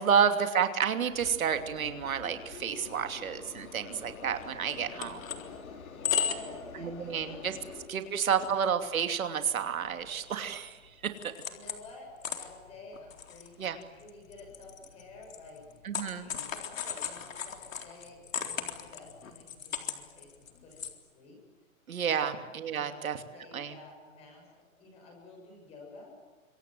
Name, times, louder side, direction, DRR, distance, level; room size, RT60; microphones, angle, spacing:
voice 1, 0.0-5.2 6.8-7.5 7.9-11.2 13.6-13.8 15.8-16.3 21.9-23.2 23.5-23.7, right 7 dB, 80° right, 7 dB, 2.9 m, -30 dB
sound 1, 1.1-7.9, left 6 dB, 90° left, 4.9 m, -47 dB
sound 2, 4.4-4.5 4.7-5.5 5.9-6.6 6.9-7.1 7.6-7.7 8.0-8.6 8.8-8.9 9.5-10.6 10.9-11.9 12.2-20.9, left 8 dB, 70° left, 3.9 m, -36 dB
voice 2, 4.6-7.9 11.5-21.4 22.1-22.4 22.7-23.0 23.3-24.5 24.8-26.1, left 2 dB, 15° left, 1 dB, 7.1 m, -51 dB
28.0 x 26.0 x 7.8 m, 1.3 s
hypercardioid pair, 180°, 41 cm